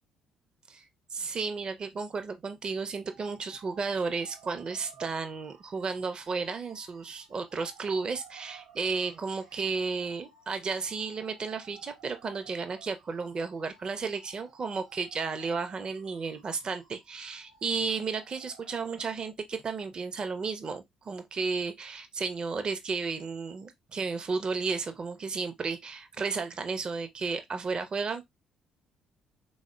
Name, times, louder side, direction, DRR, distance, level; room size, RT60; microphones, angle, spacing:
voice 1, 1.1-28.3, right 4 dB, 35° right, 0.5 m, -33 dB
sound 1, 3.0-19.1, right 7 dB, 80° right, 0.7 m, -57 dB
3.5 x 2.0 x 2.3 m
figure-of-eight pair, 45°, 3 cm